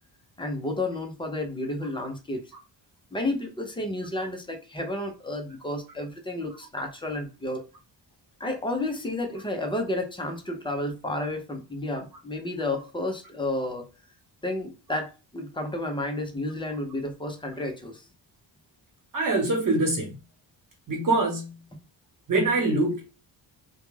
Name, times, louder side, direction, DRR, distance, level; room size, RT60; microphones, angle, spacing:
voice 1, 0.4-2.5 3.1-7.6 8.4-13.9 14.4-18.0, left 1 dB, 10° left, 0.5 m, -31 dB
voice 2, 19.1-20.1 20.9-21.5 22.3-23.0, right 2 dB, 45° right, 1.1 m, -24 dB
2.3 x 2.1 x 3.1 m
wide cardioid pair, 145°, 45 cm